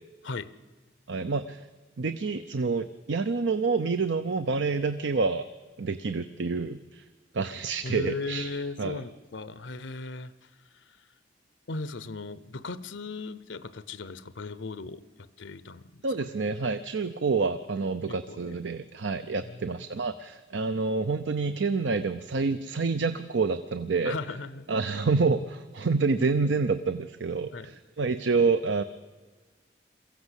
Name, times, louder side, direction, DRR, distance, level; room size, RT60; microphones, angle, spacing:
voice 1, 1.1-1.6 2.0-5.5 5.8-7.0 7.3-8.5 8.8-9.0 16.0-24.2 24.7-28.8, right 4 dB, 80° right, 11 dB, 0.6 m, -28 dB
voice 2, 7.8-10.5 10.7-10.9 11.7-16.0 18.1-18.6 19.4-19.9 24.0-24.7 27.5-27.7, left 3 dB, 90° left, 16 dB, 0.8 m, -37 dB
22.5 x 15.0 x 8.2 m, 1.3 s
head